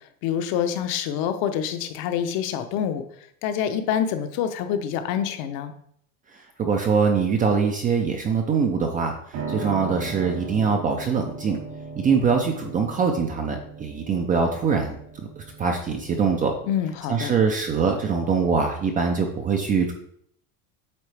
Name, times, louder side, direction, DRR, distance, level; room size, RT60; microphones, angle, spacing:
voice 1, 0.2-3.0 3.4-5.7 16.7-17.3, left 9 dB, 55° left, 8 dB, 0.8 m, -26 dB
voice 2, 6.6-9.1 9.5-11.6 12.0-16.5 17.1-19.9, right 5 dB, 20° right, 3 dB, 0.3 m, -23 dB
Piano, 9.3-19.3, right 4 dB, 75° right, 2.6 m, -38 dB
8.4 x 3.9 x 3.3 m, 0.68 s
supercardioid pair, 140°, 45 cm